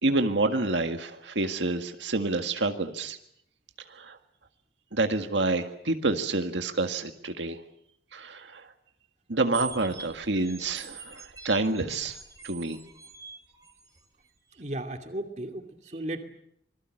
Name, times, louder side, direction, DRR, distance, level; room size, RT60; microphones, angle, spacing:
voice 1, 0.0-3.2 3.9-4.2 4.9-7.6 8.1-8.7 9.3-12.2 12.4-12.8, right 2 dB, 85° right, 6 dB, 1.8 m, -28 dB
sound 1, 9.5-14.1, right 6 dB, 20° right, 2.9 m, -44 dB
voice 2, 14.6-16.2, right 1 dB, 40° right, 5 dB, 2.5 m, -35 dB
26.5 x 21.5 x 7.8 m, 0.71 s
head